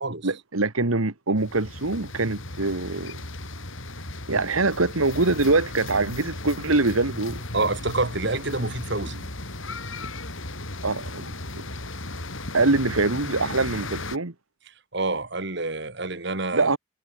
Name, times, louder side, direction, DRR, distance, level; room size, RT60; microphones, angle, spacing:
voice 1, 0.2-3.2 4.3-7.4 10.8-11.3 11.6-11.7 12.5-14.3 16.5-16.8, right 3 dB, 85° right, 1.7 m, -24 dB
sound 1, 1.4-14.2, left 2 dB, 70° left, 6.0 m, -36 dB
voice 2, 7.5-9.3 14.9-16.8, right 2 dB, 55° right, 2.5 m, -27 dB
head